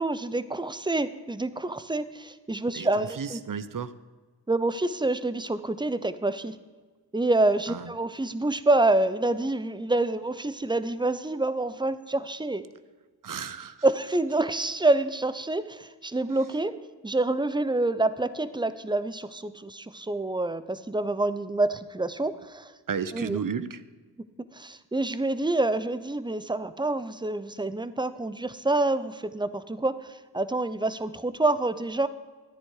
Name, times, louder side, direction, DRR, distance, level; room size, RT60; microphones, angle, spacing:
voice 1, 0.0-3.4 4.5-6.6 7.1-12.6 13.8-22.7 23.1-23.4 24.5-32.1, right 2 dB, 10° right, 13 dB, 0.8 m, -27 dB
voice 2, 2.7-3.9 7.7-7.9 13.2-13.8 22.9-23.8, right 6 dB, 45° right, 14 dB, 0.9 m, -33 dB
13.5 x 9.9 x 4.9 m, 1.3 s
cardioid pair, 45°, 44 cm